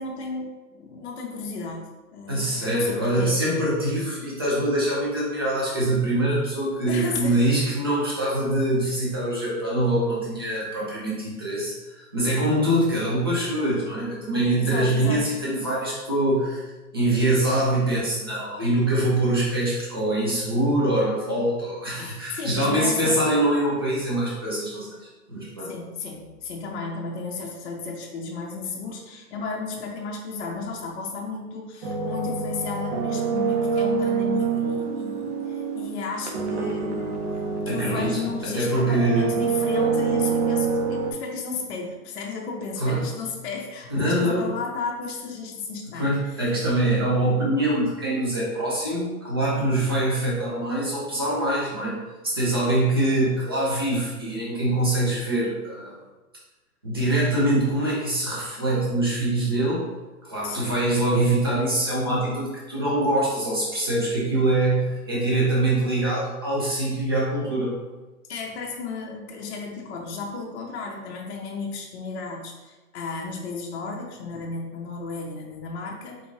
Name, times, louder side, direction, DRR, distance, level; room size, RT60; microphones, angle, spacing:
voice 1, 0.0-3.5 6.9-7.4 14.6-15.4 21.9-23.2 25.6-37.3 37.7-46.5 60.4-60.8 68.3-76.2, left 4 dB, 45° left, 0 dB, 0.6 m, -33 dB
voice 2, 2.3-16.7 16.9-24.9 25.3-25.7 37.7-39.3 42.8-43.1 43.9-44.5 46.0-52.0 52.2-55.9 56.8-59.8 60.2-67.7, right 1 dB, 20° right, -6 dB, 0.3 m, -24 dB
sound 1, 31.8-38.5 38.9-41.1, right 5 dB, 50° right, 0.7 m, -26 dB
3.6 x 2.5 x 3.1 m, 1.2 s
hypercardioid pair, 130°, 47 cm